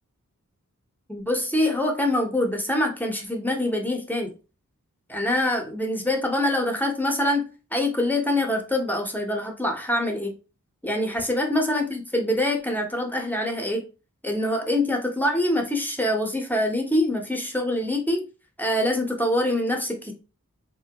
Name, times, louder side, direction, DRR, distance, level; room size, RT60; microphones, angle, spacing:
voice 1, 1.1-4.3 5.1-7.4 7.7-10.3 10.8-13.8 14.2-18.3 18.6-20.1, left 1 dB, 5° left, 2 dB, 0.8 m, -25 dB
3.2 x 2.2 x 2.8 m, 0.33 s
wide cardioid pair, 55°, 31 cm